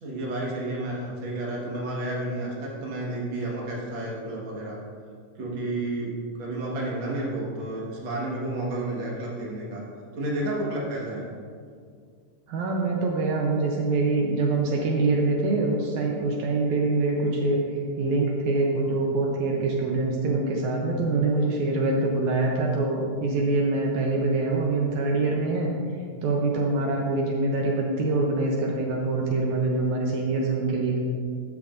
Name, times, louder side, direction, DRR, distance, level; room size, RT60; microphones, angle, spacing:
voice 1, 0.0-4.8 5.4-9.8 10.1-11.3, right 1 dB, 50° right, -4 dB, 2.0 m, -31 dB
voice 2, 12.5-25.7 26.2-31.0, right 3 dB, 80° right, -1 dB, 2.1 m, -24 dB
13.5 x 5.9 x 2.5 m, 2.1 s
omnidirectional pair, 3.4 m